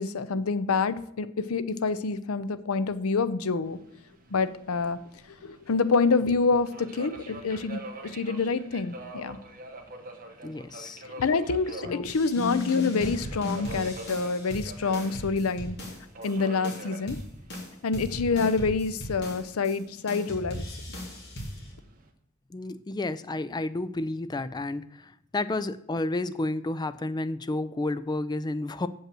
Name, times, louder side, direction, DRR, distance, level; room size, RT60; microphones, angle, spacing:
voice 1, 0.0-3.8 4.3-5.0 5.4-9.4 11.2-15.8 16.2-17.2 17.8-20.6, left 4 dB, 70° left, 14 dB, 0.6 m, -27 dB
Subway metro underground, 3.7-22.1, right 2 dB, 40° right, 1.2 m, -46 dB
voice 2, 10.4-11.0 11.9-12.1 22.5-28.9, left 2 dB, 20° left, 14 dB, 0.4 m, -31 dB
sound 1, 12.0-16.3 16.6-19.8 20.1-21.7, left 1 dB, 50° left, 2.7 m, -37 dB
7.4 x 5.5 x 7.6 m, 0.72 s
head